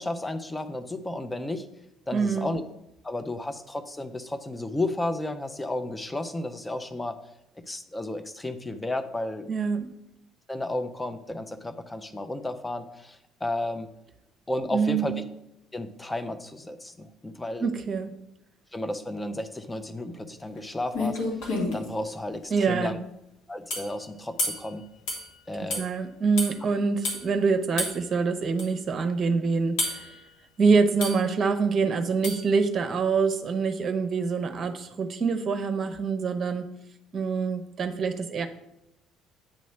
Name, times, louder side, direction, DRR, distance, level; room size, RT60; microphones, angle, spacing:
voice 1, 0.0-1.6 2.1-2.6 3.0-7.2 7.7-9.5 10.5-13.9 14.5-15.2 15.7-17.7 18.7-21.2 21.7-23.0 23.5-24.8 25.5-25.8, left 1 dB, 15° left, 9 dB, 0.7 m, -33 dB
voice 2, 2.1-2.5 9.5-9.9 14.7-15.1 17.6-18.1 22.5-23.0 25.8-30.2 30.6-36.7 37.1-38.5, right 5 dB, 40° right, 8 dB, 0.8 m, -25 dB
sound 1, 20.6-20.7 20.9-21.9 23.7-23.9 24.4-24.7 25.1-25.3 25.7-25.9 26.4-26.5 27.0-27.2 27.8-28.0 28.6-28.7 29.8-30.1 31.0-31.3 32.2-32.5, left 2 dB, 65° left, 1.8 m, -29 dB
8.7 x 3.1 x 5.8 m, 0.85 s
figure-of-eight pair, 55°, 0 cm